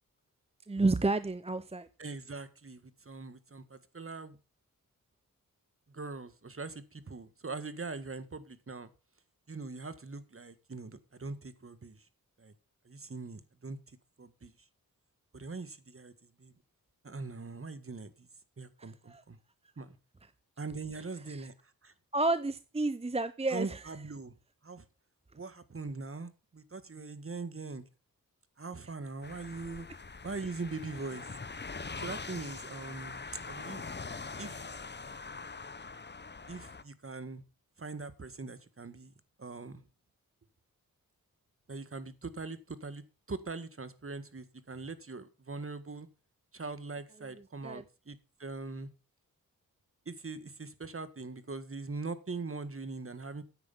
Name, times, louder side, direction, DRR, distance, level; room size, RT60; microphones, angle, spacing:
voice 1, 0.7-1.9 18.8-19.2 21.3-21.5 22.1-23.8 47.6-47.8, right 2 dB, 15° right, 0.7 m, -31 dB
voice 2, 2.0-4.4 5.9-8.9 9.5-12.0 12.4-12.5 12.8-13.8 14.2-14.5 15.3-16.1 16.4-16.5 17.0-18.3 18.6-19.4 19.8-20.0 20.6-21.5 21.8-21.9 23.5-24.3 24.6-24.8 25.3-27.8 28.6-29.9 30.2-31.3 32.0-33.2 33.5-33.9 34.4-34.6 36.5-37.4 37.8-39.1 39.4-39.8 41.7-46.1 46.5-48.9 50.0-53.4, right 3 dB, 40° right, 1.7 m, -41 dB
sound 1, 29.2-36.8, left 4 dB, 30° left, 1.0 m, -43 dB
9.7 x 7.8 x 5.5 m
cardioid pair, 45°, 35 cm